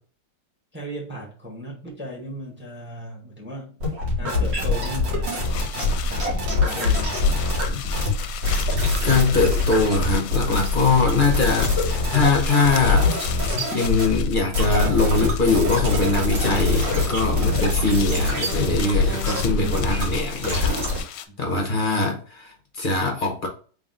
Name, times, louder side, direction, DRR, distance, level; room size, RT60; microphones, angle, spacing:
voice 1, 0.7-3.8 4.2-5.5 6.0-7.3 21.3-21.4, equal, 5° right, 1.0 m, -37 dB
sound 1, 3.8-21.0, left 2 dB, 70° right, 2.6 m, -24 dB
sound 2, 5.3-14.4 14.7-15.9 16.2-21.3, left 9 dB, 75° left, 1.1 m, -37 dB
voice 2, 9.0-11.8 12.1-13.4 13.7-20.8 21.1-23.5, left 3 dB, 40° left, 0.8 m, -22 dB
3.9 x 3.6 x 3.7 m
omnidirectional pair, 2.0 m